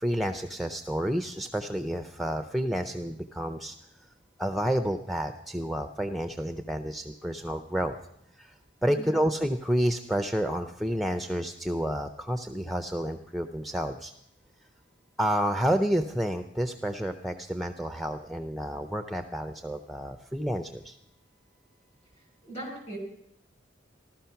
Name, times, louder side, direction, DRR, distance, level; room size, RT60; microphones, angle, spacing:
voice 1, 0.0-3.7 4.4-8.0 8.4-8.5 8.8-14.1 15.2-21.0, equal, ahead, 7 dB, 0.5 m, -30 dB
voice 2, 8.9-9.2 22.4-23.0, right 1 dB, 35° left, 0 dB, 5.2 m, -39 dB
15.0 x 12.5 x 5.7 m, 0.74 s
head